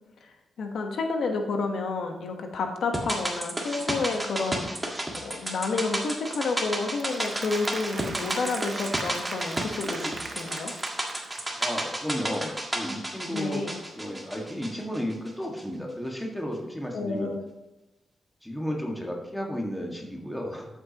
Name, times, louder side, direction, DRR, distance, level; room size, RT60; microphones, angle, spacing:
voice 1, 0.6-4.7 5.2-10.7 13.3-13.8 16.9-17.4, left 3 dB, 75° left, 4 dB, 1.2 m, -30 dB
sound 1, 2.9-15.3 15.6-15.7, right 1 dB, 15° right, 1.6 m, -32 dB
Applause, 6.8-11.9, right 3 dB, 35° right, 0.8 m, -40 dB
voice 2, 11.6-13.6 13.9-17.3 18.4-20.7, equal, ahead, -1 dB, 1.8 m, -33 dB
13.0 x 7.5 x 3.0 m, 1.0 s
wide cardioid pair, 130°, 0 cm